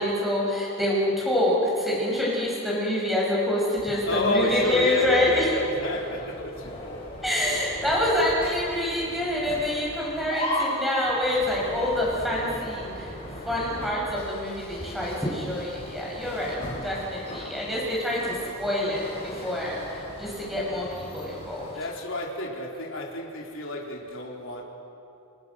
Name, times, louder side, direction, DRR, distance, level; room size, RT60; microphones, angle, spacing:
voice 1, 0.0-5.5 7.2-13.1 13.5-16.6 16.8-21.7, left 1 dB, ahead, -5 dB, 7.9 m, -26 dB
sound 1, 3.7-21.7, left 1 dB, 25° left, 6.8 m, -38 dB
voice 2, 4.0-7.4 8.1-8.4 17.2-17.6 21.7-24.6, left 1 dB, 60° left, -1 dB, 4.1 m, -31 dB
30.0 x 26.0 x 6.5 m, 2.7 s
head